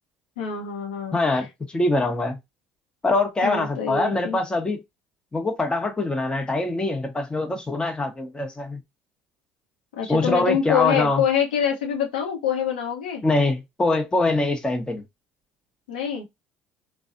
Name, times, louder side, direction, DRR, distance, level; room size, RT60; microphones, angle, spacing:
voice 1, 0.4-1.4 3.4-4.4 10.0-13.2 15.9-16.3, left 8 dB, 85° left, 0.9 m, -25 dB
voice 2, 1.1-2.4 3.0-4.8 5.3-8.8 10.0-11.2 13.2-15.0, left 2 dB, 15° left, 1.1 m, -23 dB
3.3 x 2.4 x 2.5 m
hypercardioid pair, 70°, 5 cm